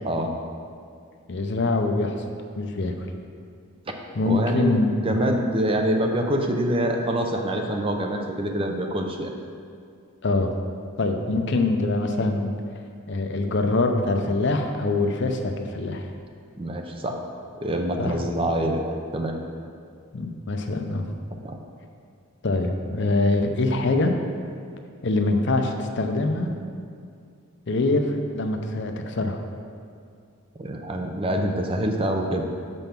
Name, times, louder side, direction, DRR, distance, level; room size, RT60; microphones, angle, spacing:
voice 1, 1.3-2.2 2.6-3.1 4.2-5.2 10.2-10.5 11.0-12.6 13.1-16.1 18.0-18.2 20.1-21.1 22.4-24.1 25.0-26.6 27.7-29.4, left 2 dB, 55° left, 5 dB, 0.6 m, -24 dB
voice 2, 4.3-9.3 16.6-17.2 17.6-19.3 21.4-21.6 30.6-32.4, right 1 dB, 25° right, 3 dB, 0.5 m, -25 dB
6.9 x 5.4 x 5.8 m, 2.3 s
head